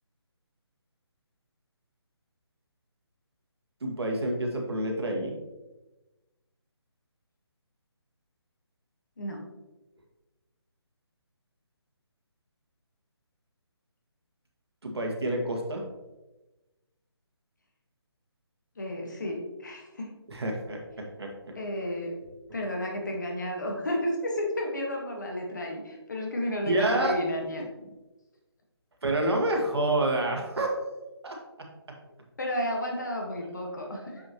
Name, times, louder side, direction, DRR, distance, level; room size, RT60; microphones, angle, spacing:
voice 1, 3.8-5.4 14.8-15.8 20.3-21.3 26.6-27.2 29.0-30.8 31.2-31.7 34.0-34.1, right 1 dB, 70° right, 1 dB, 1.7 m, -28 dB
voice 2, 18.8-20.1 21.6-22.1 22.5-27.6 32.4-34.2, left 1 dB, 45° left, 1 dB, 1.4 m, -32 dB
6.9 x 6.2 x 2.9 m, 1.1 s
hypercardioid pair, 180°, 14 cm